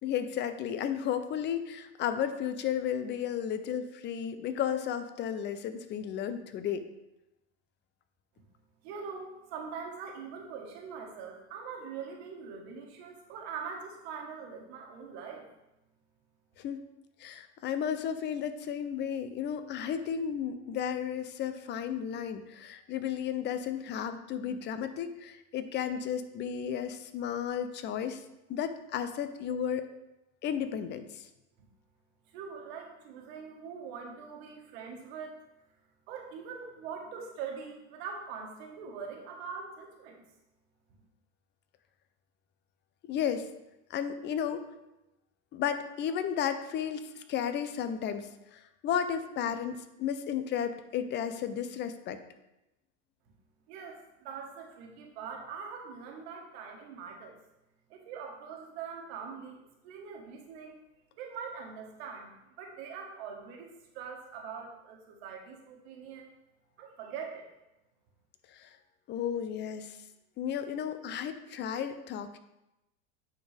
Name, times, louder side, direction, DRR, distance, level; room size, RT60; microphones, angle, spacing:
voice 1, 0.0-6.9 16.6-16.9 17.2-28.2 28.5-29.9 30.4-31.3 43.1-43.5 43.9-44.7 45.5-52.2 68.5-68.7 69.1-70.0 70.4-72.4, left 8 dB, 30° left, 10 dB, 0.6 m, -33 dB
voice 2, 8.8-15.5 32.3-35.4 36.1-40.2 53.7-57.4 57.9-60.8 61.2-66.3 66.8-67.5, right 6 dB, 65° right, 1 dB, 1.7 m, -43 dB
9.1 x 4.5 x 3.4 m, 0.92 s
supercardioid pair, 125°, 34 cm